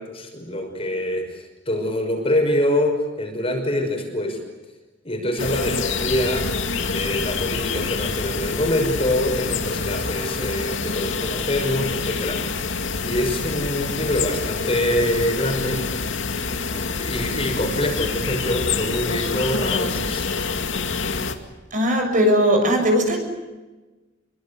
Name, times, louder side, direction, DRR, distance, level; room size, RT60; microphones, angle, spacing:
voice 1, 0.0-4.4 5.0-12.7 13.0-15.8 16.7-20.3, left 1 dB, 30° left, 4 dB, 5.8 m, -25 dB
sound 1, 5.4-21.3, left 4 dB, 75° left, 2.3 m, -26 dB
voice 2, 21.7-23.2, equal, 45° right, 4 dB, 7.2 m, -18 dB
27.5 x 24.0 x 8.4 m, 1.2 s
head